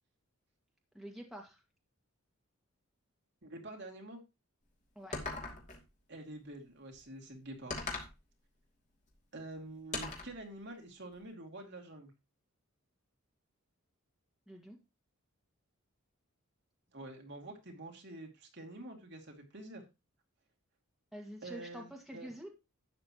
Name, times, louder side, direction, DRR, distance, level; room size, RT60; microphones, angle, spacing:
voice 1, 0.9-1.6 5.0-5.2 14.5-14.8 21.1-22.5, equal, ahead, 0 dB, 2.0 m, -47 dB
voice 2, 3.4-4.2 6.1-7.9 9.3-12.1 16.9-19.8 21.4-22.3, right 2 dB, 55° right, 2 dB, 2.6 m, -47 dB
sound 1, 5.1-5.8 7.7-8.2 9.9-10.4, left 3 dB, 35° left, 2.7 m, -39 dB
12.0 x 9.3 x 3.0 m, 0.25 s
head